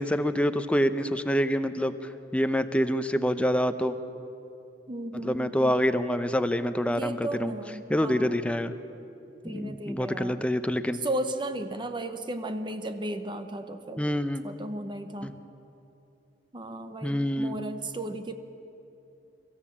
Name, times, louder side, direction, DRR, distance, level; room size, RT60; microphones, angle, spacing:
voice 1, 0.0-4.0 5.1-7.5 7.9-8.7 9.4-11.0 14.0-14.4 15.2-15.3 17.0-17.6, equal, 5° left, 10 dB, 0.7 m, -26 dB
voice 2, 4.9-5.7 6.9-8.4 9.4-10.4 11.0-14.0 14.4-15.3 16.5-18.3, right 1 dB, 25° right, 8 dB, 0.9 m, -35 dB
24.5 x 14.5 x 7.4 m, 2.9 s
head